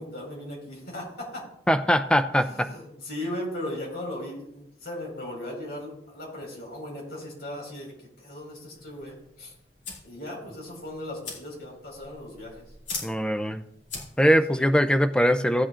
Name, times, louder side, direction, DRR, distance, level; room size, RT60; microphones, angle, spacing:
voice 1, 0.0-1.4 2.4-9.5 10.0-12.6 14.5-14.7, left 1 dB, 60° left, -2 dB, 4.9 m, -37 dB
voice 2, 1.7-2.7 13.0-13.6 14.2-15.7, equal, 5° left, 8 dB, 0.5 m, -21 dB
sound 1, 8.7-14.5, left 4 dB, 85° left, 2.7 m, -42 dB
16.5 x 8.9 x 2.5 m, 0.75 s
head